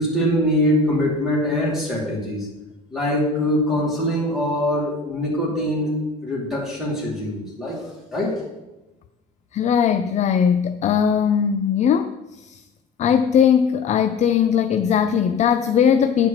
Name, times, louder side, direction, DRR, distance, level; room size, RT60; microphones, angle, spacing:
voice 1, 0.0-2.5 2.9-6.0 6.2-7.8 8.1-8.4, equal, ahead, -5 dB, 2.4 m, -23 dB
voice 2, 9.5-12.6 13.0-16.3, left 8 dB, 45° left, 9 dB, 0.4 m, -19 dB
9.4 x 4.5 x 6.5 m, 1.0 s
cardioid pair, 110°, 17 cm